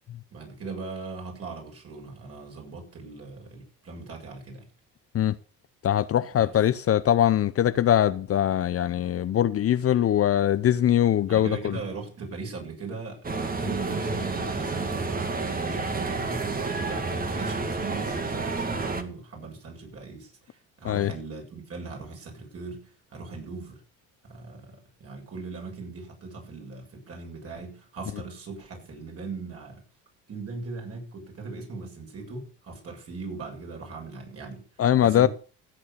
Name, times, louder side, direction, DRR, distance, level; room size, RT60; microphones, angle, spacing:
voice 1, 0.3-4.7 6.4-6.6 11.3-23.8 24.3-29.8 30.3-34.7 35.0-35.3, right 4 dB, 40° right, 7.2 m, -39 dB
voice 2, 5.8-11.8 20.8-21.1 34.8-35.3, left 11 dB, 40° left, 0.8 m, -22 dB
sound 1, 13.2-19.0, right 3 dB, 25° right, 2.2 m, -30 dB
16.0 x 8.4 x 6.9 m
cardioid pair, 105°, 36 cm